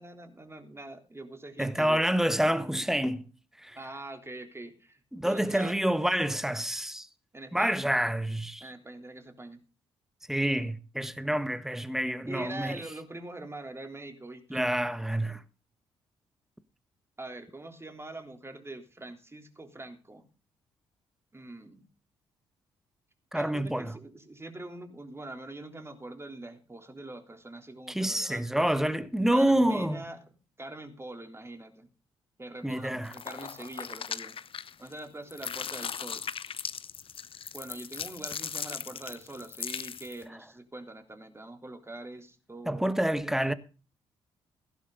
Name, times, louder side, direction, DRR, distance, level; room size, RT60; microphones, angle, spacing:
voice 1, 0.0-2.0 3.8-5.8 7.3-7.8 8.6-9.6 12.3-14.7 17.2-20.3 21.3-21.8 23.3-28.6 29.3-30.3 30.6-31.9 32.4-34.3 34.8-36.3 37.5-43.0, right 2 dB, 20° right, 3.5 m, -43 dB
voice 2, 1.6-3.3 3.6-3.8 5.1-7.1 7.5-8.6 10.3-12.8 14.5-15.4 23.3-24.0 27.9-30.0 32.6-33.1 42.7-43.5, right 1 dB, 5° right, 1.4 m, -28 dB
sound 1, 33.0-35.0 35.3-40.2, left 7 dB, 45° left, 1.0 m, -38 dB
16.0 x 11.5 x 4.0 m
figure-of-eight pair, 40°, 13 cm